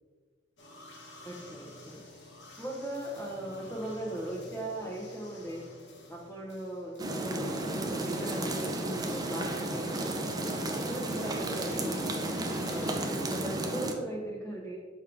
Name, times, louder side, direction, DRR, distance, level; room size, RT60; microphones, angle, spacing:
sound 1, 0.6-12.9, left 1 dB, 65° left, 1.1 m, -49 dB
voice 1, 1.2-2.0 2.6-5.6 6.1-10.2 10.8-12.2 12.7-14.8, right 1 dB, 10° left, -5 dB, 0.9 m, -39 dB
sound 2, 7.0-13.9, right 1 dB, 20° right, 0.5 m, -33 dB
6.4 x 5.1 x 3.5 m, 1.5 s
head